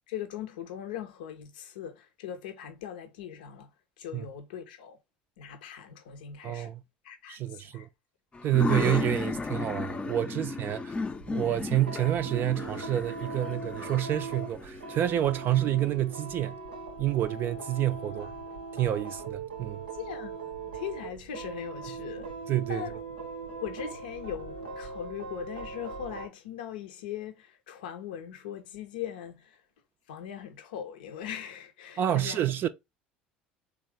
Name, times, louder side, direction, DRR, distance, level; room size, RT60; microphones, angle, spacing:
voice 1, 0.1-3.7 4.0-5.0 5.4-6.7 7.0-7.9 10.3-10.5 18.2-18.3 19.9-22.3 22.7-23.0 23.6-29.6 30.1-32.4, left 9 dB, 70° left, 0.5 m, -40 dB
voice 2, 6.4-6.8 7.3-7.9 8.4-10.9 11.3-16.6 17.0-18.3 18.7-19.8 22.5-22.8 32.0-32.7, right 12 dB, 45° right, 0.4 m, -28 dB
sound 1, 8.3-15.9, left 3 dB, 20° left, 0.5 m, -35 dB
sound 2, 11.1-26.3, right 4 dB, 80° right, 0.7 m, -40 dB
3.5 x 3.0 x 3.3 m
figure-of-eight pair, 65°, 5 cm